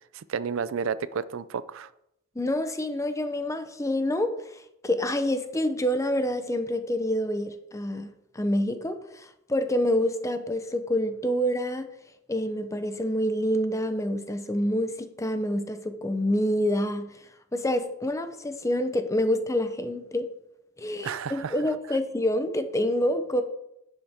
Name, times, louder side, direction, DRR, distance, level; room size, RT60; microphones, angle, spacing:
voice 1, 0.1-1.9 21.0-21.5, right 6 dB, 70° right, 16 dB, 0.4 m, -31 dB
voice 2, 2.3-8.1 8.3-11.9 12.3-17.2 17.5-20.3 20.8-23.4, left 1 dB, 15° left, 9 dB, 0.7 m, -27 dB
11.0 x 7.8 x 3.6 m, 0.82 s
head